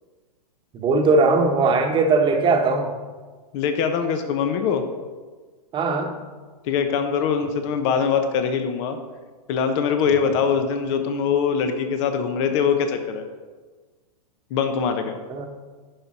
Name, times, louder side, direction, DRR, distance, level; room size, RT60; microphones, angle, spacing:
voice 1, 0.7-2.9 5.7-6.1 10.1-10.2 15.3-15.5, right 3 dB, 25° right, 4 dB, 1.2 m, -19 dB
voice 2, 3.5-4.8 6.6-9.0 9.5-13.3 14.5-15.2, left 6 dB, 50° left, 7 dB, 1.1 m, -22 dB
11.0 x 5.4 x 4.3 m, 1.4 s
hypercardioid pair, 120°, 20 cm